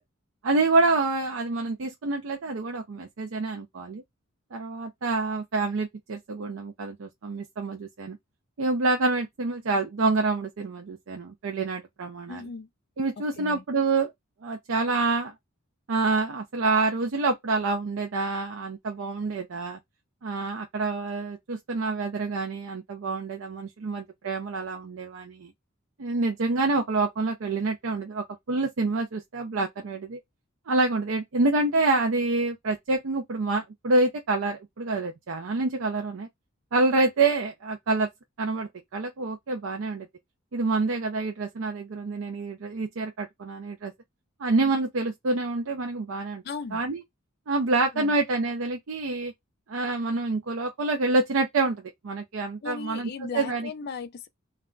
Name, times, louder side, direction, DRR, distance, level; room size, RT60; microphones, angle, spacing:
voice 1, 0.4-4.0 4.5-8.2 8.6-12.4 13.0-14.1 14.4-15.3 15.9-19.8 20.2-25.5 26.0-30.2 30.7-36.3 36.7-38.1 38.4-40.1 40.5-43.9 44.4-46.4 46.7-47.0 47.5-49.3 49.7-53.1 53.3-53.7, right 3 dB, 65° right, 0.5 m, -27 dB
voice 2, 12.3-12.7 13.4-13.6 46.4-46.8 47.9-48.2 52.6-54.3, left 5 dB, 50° left, 0.4 m, -37 dB
2.3 x 2.1 x 3.7 m
head